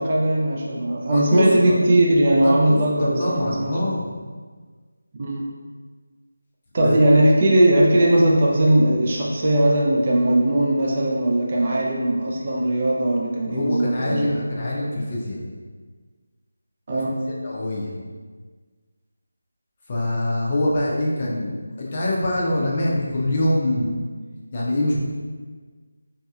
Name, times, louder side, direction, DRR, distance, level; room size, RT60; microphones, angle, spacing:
voice 1, 0.0-4.0 5.2-5.4 6.7-14.4 16.9-17.2, right 1 dB, 35° right, -3 dB, 0.4 m, -19 dB
voice 2, 1.1-1.7 2.4-4.1 6.8-7.0 13.5-15.4 17.4-17.9 19.9-23.9 24.5-25.0, left 1 dB, 30° left, -4 dB, 0.6 m, -24 dB
4.0 x 2.7 x 2.3 m, 1.5 s
figure-of-eight pair, 170°, 0 cm